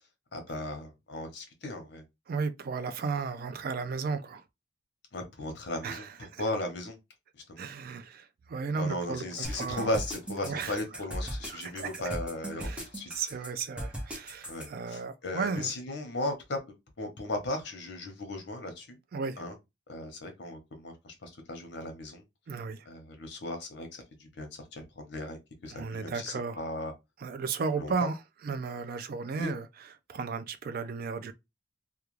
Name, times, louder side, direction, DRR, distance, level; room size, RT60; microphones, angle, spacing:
voice 1, 0.3-2.0 5.1-6.1 6.4-7.0 7.5-7.6 8.8-13.1 14.5-16.6 17.0-19.0 19.4-19.5 19.9-22.2 22.9-26.9 27.8-28.1 29.4-29.5, left 1 dB, 65° left, 0.8 m, -36 dB
voice 2, 2.3-4.4 5.8-6.4 7.6-9.9 10.4-11.0 11.4-12.0 12.6-15.7 19.1-19.4 22.5-22.9 25.7-26.6 27.2-31.3, right 5 dB, 50° right, 0.3 m, -35 dB
sound 1, 9.4-14.7, equal, 5° right, 0.6 m, -38 dB
2.3 x 2.3 x 3.0 m
head